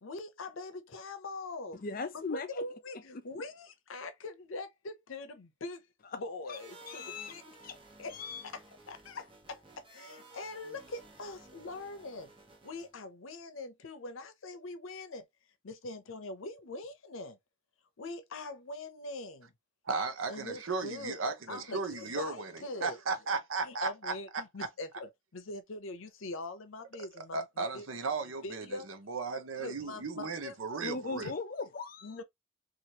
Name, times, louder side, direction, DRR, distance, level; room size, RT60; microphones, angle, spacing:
voice 1, 0.0-1.8 2.1-5.9 6.1-7.4 8.0-8.1 8.4-8.6 8.9-12.3 12.6-15.2 15.6-17.4 18.0-19.5 20.3-23.0 23.6-27.9 28.4-28.9 29.6-30.8 31.2-31.3 32.0-32.2, left 2 dB, 85° left, 0.7 m, -43 dB
voice 2, 1.7-2.7 3.1-3.2 6.1-6.2 6.5-6.6 6.9-7.4 7.6-7.8 8.1-8.4 30.8-32.2, left 4 dB, 45° left, 0.5 m, -39 dB
sound 1, 6.5-13.0, right 2 dB, 25° right, 0.8 m, -55 dB
voice 3, 19.9-22.5 22.8-24.4 27.3-31.3, right 4 dB, 85° right, 0.7 m, -35 dB
3.0 x 2.5 x 2.8 m
head